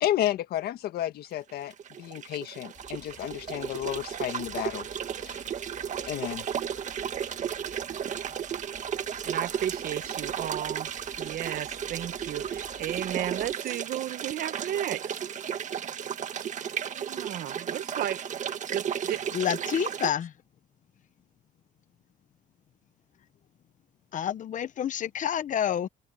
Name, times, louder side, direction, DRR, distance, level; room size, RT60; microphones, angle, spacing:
voice 1, 0.0-4.9 5.2-5.4 6.0-6.5, left 12 dB, 70° left, 1.6 m, -32 dB
sound 1, 1.5-20.1, right 8 dB, 45° right, 1.8 m, -34 dB
sound 2, 2.7-13.5, left 4 dB, 25° left, 4.0 m, -54 dB
voice 2, 9.2-10.9 11.2-15.2 16.9-18.2 18.7-19.2, right 11 dB, 60° right, 1.3 m, -34 dB
voice 3, 19.3-20.3 24.1-25.9, left 9 dB, 50° left, 1.2 m, -28 dB
open air
cardioid pair, 110°, 17 cm